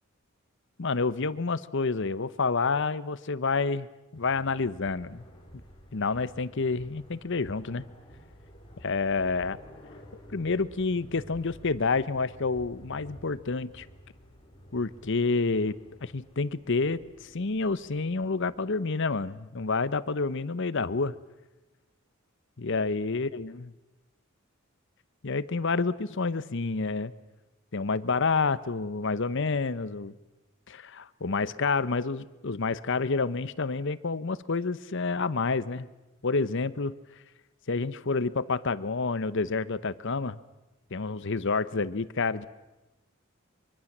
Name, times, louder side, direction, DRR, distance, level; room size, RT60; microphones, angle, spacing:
voice 1, 0.8-3.9 4.1-5.2 5.9-7.8 8.8-9.6 10.3-13.9 14.7-15.8 16.0-21.1 22.6-23.6 25.2-27.1 27.7-30.1 30.7-35.9 36.2-37.0 37.7-40.4 40.9-42.5, left 4 dB, 65° left, 16 dB, 0.9 m, -29 dB
sound 1, 4.1-18.6, equal, 25° left, 4.6 m, -52 dB
sound 2, 5.5-5.7 6.1-7.1 7.4-7.7 8.0-8.4 8.7-9.6 10.0-10.3 10.6-10.9 11.3-11.6 12.0-14.0, equal, 15° right, 7.0 m, -54 dB
24.5 x 24.0 x 7.4 m, 1.0 s
head